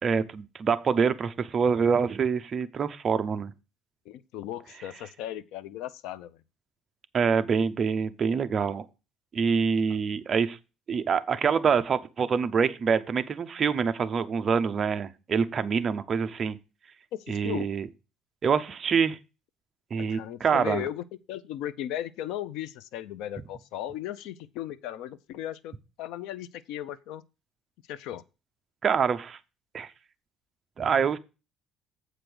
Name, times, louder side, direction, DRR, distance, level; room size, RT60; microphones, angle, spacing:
voice 1, 0.0-3.5 7.1-8.8 9.3-10.6 10.9-16.6 17.3-17.9 18.4-19.2 19.9-20.9 28.8-29.4 29.7-29.9 30.8-31.2, right 6 dB, 30° right, 0.6 m, -26 dB
voice 2, 4.1-6.4 17.1-17.7 20.0-27.2 27.9-28.2, left 12 dB, 85° left, 0.6 m, -36 dB
8.0 x 5.1 x 6.1 m
cardioid pair, 175°, 0 cm